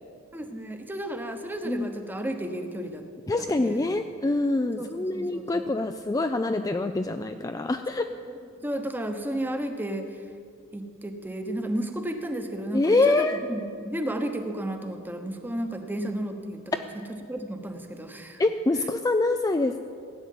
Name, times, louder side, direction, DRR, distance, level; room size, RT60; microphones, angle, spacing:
voice 1, 0.3-3.0 3.4-3.9 4.8-5.7 8.1-10.1 10.7-17.0 17.3-18.4, right 1 dB, 10° right, 6 dB, 1.0 m, -33 dB
voice 2, 3.3-8.1 12.7-13.4 18.4-19.8, left 2 dB, 15° left, 8 dB, 0.3 m, -25 dB
16.0 x 9.8 x 7.5 m, 2.4 s
head